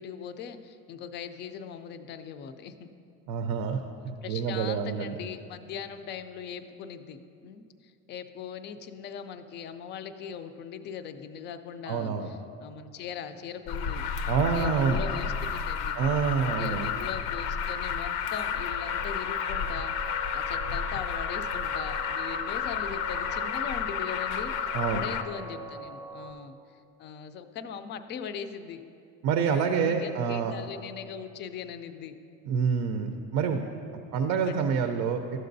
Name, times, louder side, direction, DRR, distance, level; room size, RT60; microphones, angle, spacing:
voice 1, 0.0-2.9 4.2-14.0 14.5-16.0 16.6-26.6 27.0-28.8 29.7-32.2 33.9-34.7, left 7 dB, 35° left, 10 dB, 0.4 m, -40 dB
voice 2, 3.3-3.8 4.0-5.1 11.9-12.3 14.3-15.0 15.9-16.9 24.7-25.0 29.2-30.5 32.5-33.6 33.9-35.4, right 6 dB, 70° right, 6 dB, 0.6 m, -27 dB
Alarm, 13.7-25.2, left 7 dB, 80° left, 0.6 m, -31 dB
sound 1, 18.2-26.3, right 4 dB, 10° right, 0.7 m, -43 dB
12.5 x 7.5 x 2.6 m, 2.5 s
cardioid pair, 140°, 30 cm